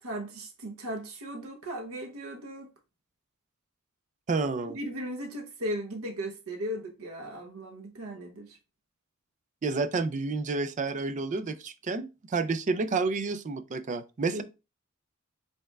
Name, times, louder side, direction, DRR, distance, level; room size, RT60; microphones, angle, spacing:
voice 1, 0.0-2.7 4.6-8.5 14.3-14.4, equal, 75° right, 0.9 m, -37 dB
voice 2, 4.3-4.8 9.6-14.4, right 3 dB, 35° right, 0.4 m, -30 dB
5.3 x 3.4 x 2.3 m
head